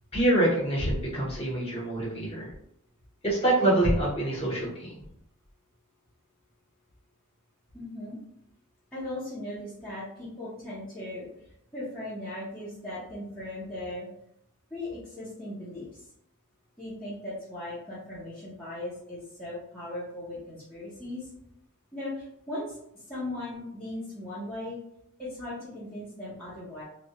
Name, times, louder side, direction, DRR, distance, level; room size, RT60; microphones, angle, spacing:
voice 1, 0.1-2.5 3.2-4.9, right 1 dB, 25° left, -6 dB, 0.9 m, -25 dB
voice 2, 7.7-8.2 8.9-11.3 11.7-14.1 14.7-16.0 16.8-21.3 21.9-22.8 23.1-24.8 25.2-26.8, left 1 dB, 5° left, -11 dB, 0.7 m, -38 dB
2.2 x 2.1 x 2.8 m, 0.75 s
head